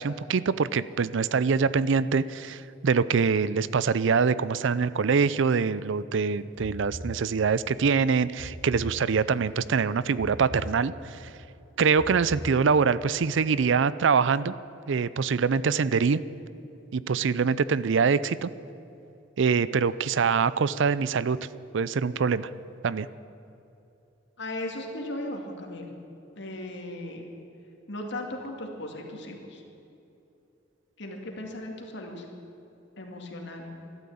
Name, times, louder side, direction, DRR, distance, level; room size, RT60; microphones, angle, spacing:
voice 1, 0.0-11.3 11.8-14.5 14.9-16.2 16.9-18.5 19.4-21.4 21.7-22.5 22.8-23.1, right 5 dB, 65° right, 17 dB, 0.5 m, -24 dB
sound 1, 6.5-7.7 8.4-9.5 10.1-11.3 11.9-13.1, equal, 30° right, 4.2 m, -41 dB
voice 2, 24.4-25.9 26.4-27.3 27.9-29.6 31.0-32.3 33.0-33.7, left 1 dB, 65° left, 2 dB, 2.4 m, -37 dB
14.0 x 12.0 x 8.6 m, 2.8 s
head